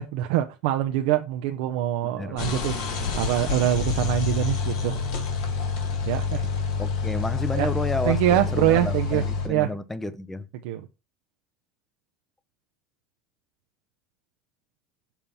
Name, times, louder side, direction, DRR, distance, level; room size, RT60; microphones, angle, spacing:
voice 1, 0.0-5.0 6.1-6.5 7.5-7.7 8.1-9.7 10.6-10.9, right 12 dB, 70° right, 0.5 m, -24 dB
voice 2, 2.1-2.6 6.8-10.5, left 2 dB, 10° left, 0.5 m, -31 dB
sound 1, 2.4-9.5, left 5 dB, 70° left, 1.9 m, -28 dB
7.1 x 2.8 x 5.4 m
supercardioid pair, 115°, 3 cm